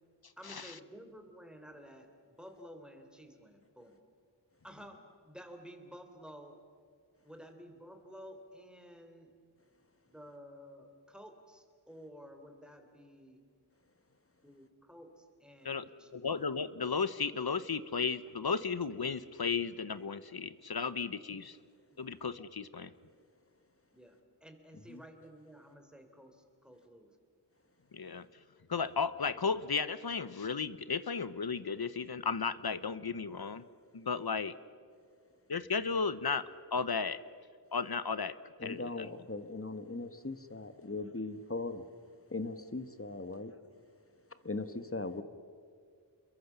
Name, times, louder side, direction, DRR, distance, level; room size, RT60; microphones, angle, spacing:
voice 1, 0.4-3.9 4.6-6.6 7.2-9.3 10.1-13.4 14.4-16.2 21.9-22.1 23.9-27.1, equal, ahead, 5 dB, 3.4 m, -52 dB
voice 2, 15.6-21.6 22.0-22.9 27.9-28.3 28.7-33.6 33.9-34.5 35.5-37.2 37.7-38.4 38.6-39.1, left 5 dB, 60° left, 15 dB, 0.9 m, -34 dB
voice 3, 38.6-41.9 42.3-43.5 44.4-45.2, left 3 dB, 30° left, 10 dB, 1.3 m, -39 dB
28.0 x 22.0 x 6.9 m, 2.1 s
wide cardioid pair, 50°, 43 cm